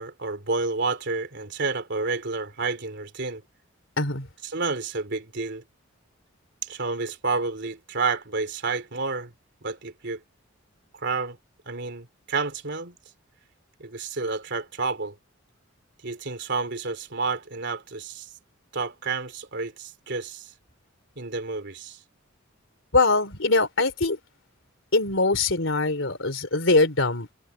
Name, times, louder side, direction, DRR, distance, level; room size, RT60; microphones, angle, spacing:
voice 1, 0.0-3.4 4.4-5.6 6.6-9.3 9.6-10.2 11.0-11.4 11.6-13.0 13.8-15.2 16.0-18.3 18.7-20.5 21.2-22.0, right 4 dB, 60° right, 3.2 m, -30 dB
voice 2, 4.0-4.3 22.9-24.2 24.9-27.3, left 3 dB, 65° left, 3.9 m, -22 dB
head